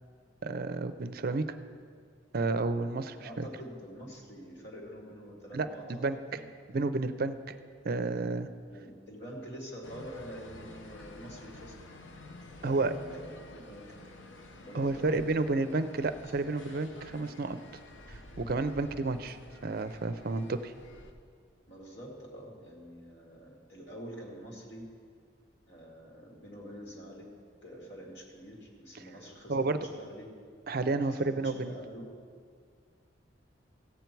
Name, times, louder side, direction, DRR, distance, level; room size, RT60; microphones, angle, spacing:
voice 1, 0.4-1.5 2.3-3.5 5.5-6.4 6.7-7.5 7.8-8.5 12.6-12.9 14.7-17.6 18.1-19.4 19.6-20.7 29.5-29.8 30.7-31.8, right 3 dB, 55° right, 10 dB, 0.5 m, -31 dB
voice 2, 3.1-6.5 8.7-11.7 12.6-13.8 14.6-16.2 21.7-24.9 25.7-27.3 27.6-30.3 30.9-32.1, equal, 60° left, -2 dB, 2.5 m, -46 dB
sound 1, 9.8-21.1, left 1 dB, 85° left, 1.0 m, -50 dB
15.5 x 8.1 x 4.6 m, 2.1 s
head